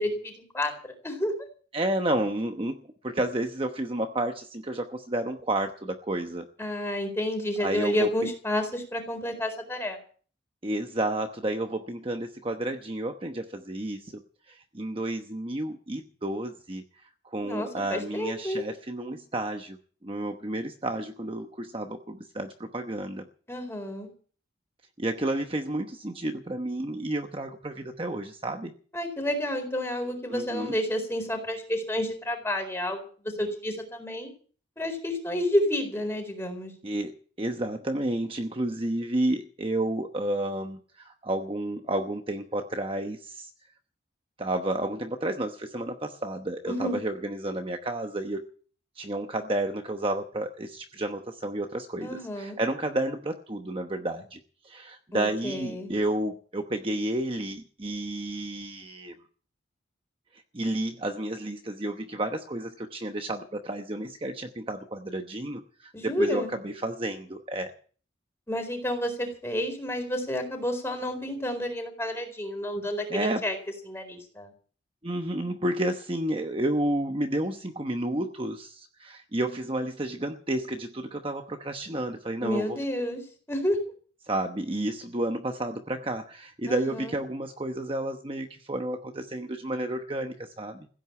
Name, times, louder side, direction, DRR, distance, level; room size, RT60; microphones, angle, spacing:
voice 1, 0.0-1.3 6.6-10.0 17.4-18.7 23.5-24.1 28.9-33.0 33.4-34.3 34.8-36.7 46.7-47.0 52.0-52.6 55.1-55.9 65.9-66.5 68.5-73.6 73.8-74.5 82.4-83.2 83.5-83.8 86.6-87.1, left 1 dB, 15° left, 5 dB, 4.2 m, -30 dB
voice 2, 1.7-2.8 3.0-6.4 7.6-8.1 10.6-14.1 14.5-16.8 17.2-19.8 20.0-23.2 25.0-28.7 30.3-30.7 36.8-43.5 44.4-48.4 49.0-54.4 54.6-59.1 60.5-67.7 73.1-73.4 75.0-82.8 84.3-90.9, right 1 dB, 30° right, 5 dB, 1.0 m, -31 dB
16.0 x 9.1 x 8.3 m, 0.43 s
head